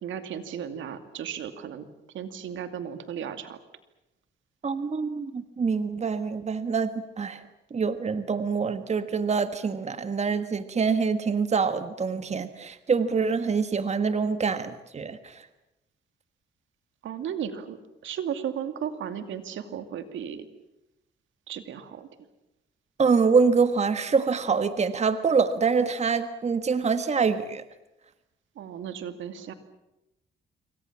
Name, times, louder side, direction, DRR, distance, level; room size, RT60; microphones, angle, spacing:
voice 1, 0.0-1.9 2.1-3.6 17.0-17.8 18.0-20.5 21.5-22.1 28.6-29.5, right 8 dB, 75° right, 9 dB, 2.5 m, -35 dB
voice 2, 4.6-7.4 7.7-15.4 23.0-27.6, right 5 dB, 35° right, 10 dB, 1.6 m, -25 dB
27.0 x 24.5 x 7.4 m, 0.92 s
cardioid pair, 90°, 20 cm